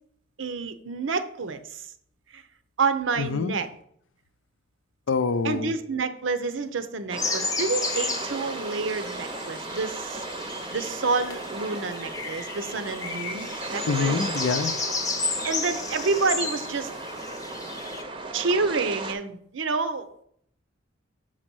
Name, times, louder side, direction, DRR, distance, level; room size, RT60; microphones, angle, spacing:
voice 1, 0.4-1.6 2.3-2.4 2.8-3.7 5.4-10.2 10.7-14.2 15.4-16.9 18.3-20.1, right 4 dB, 80° right, 0.7 m, -28 dB
voice 2, 3.2-3.6 5.1-5.7 13.9-14.7, left 5 dB, 75° left, 0.5 m, -25 dB
sound 1, 7.1-19.1, right 2 dB, 25° right, 0.6 m, -36 dB
sound 2, 7.2-18.0, left 3 dB, 20° left, 0.6 m, -33 dB
6.3 x 4.1 x 6.1 m
head